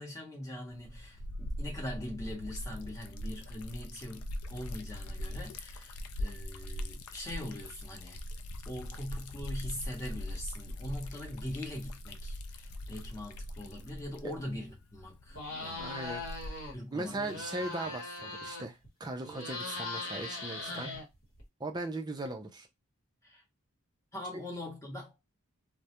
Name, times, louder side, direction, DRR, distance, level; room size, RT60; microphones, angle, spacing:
voice 1, 0.0-4.2 4.5-8.2 8.7-15.9 16.7-17.4 18.4-18.5 20.7-21.0 23.2-23.4 24.1-25.3, left 1 dB, 15° left, 0.8 m, -42 dB
Liquid, 0.7-16.8, left 1 dB, 75° left, 0.4 m, -41 dB
sound 1, 15.3-16.7 17.1-18.9 19.2-21.4, left 3 dB, 60° left, 1.0 m, -40 dB
voice 2, 15.8-16.2 16.9-20.9 21.6-22.7 24.3-24.4, right 2 dB, 20° right, 0.4 m, -38 dB
2.3 x 2.0 x 2.8 m
head